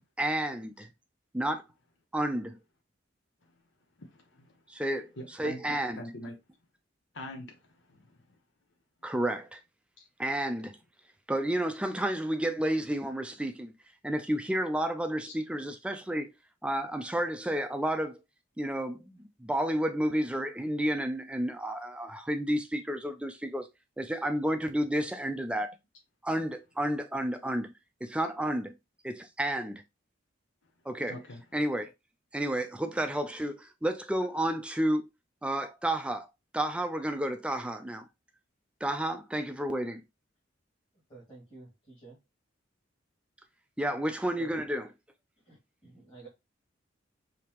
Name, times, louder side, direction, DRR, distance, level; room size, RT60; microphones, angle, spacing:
voice 1, 0.2-0.9 1.3-1.6 2.1-2.6 4.7-5.1 5.4-6.0 9.0-9.6 10.2-10.8 11.3-13.7 14.0-16.3 16.6-18.2 18.6-23.7 24.0-25.7 26.2-27.7 28.0-28.7 29.0-29.8 30.9-31.2 31.5-31.9 32.3-35.0 35.4-36.3 36.5-38.1 38.8-40.0 43.8-44.9, right 1 dB, 5° right, 0.4 m, -31 dB
voice 2, 4.0-4.5 5.2-6.3 7.1-7.6 7.9-8.1 10.0-10.1 15.2-15.3 31.1-31.4, left 1 dB, 70° left, 0.9 m, -43 dB
voice 3, 41.1-42.2 44.4-44.5 45.4-46.3, right 3 dB, 25° left, 2.3 m, -51 dB
5.2 x 2.9 x 3.0 m
head